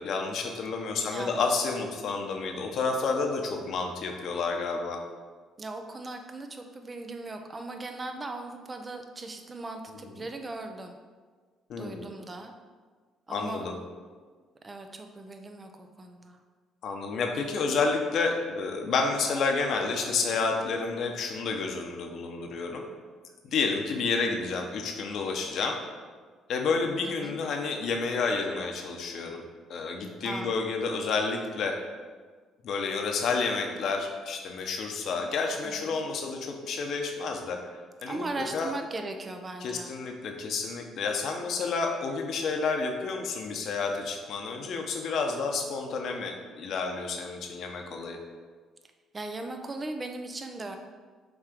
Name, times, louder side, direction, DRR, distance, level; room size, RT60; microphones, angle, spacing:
voice 1, 0.0-5.0 11.7-12.1 13.3-13.7 16.8-22.8 23.5-25.8 26.5-29.4 29.7-31.8 32.6-37.6 38.0-38.7 39.6-48.2, left 4 dB, 65° left, 3 dB, 1.0 m, -30 dB
voice 2, 1.0-1.4 5.6-10.9 11.8-12.5 13.3-13.7 14.6-16.4 27.2-27.4 30.2-30.6 35.6-36.0 38.1-39.9 49.1-50.8, right 2 dB, 30° right, 5 dB, 0.8 m, -38 dB
6.1 x 3.6 x 5.1 m, 1.5 s
supercardioid pair, 65°, 0 cm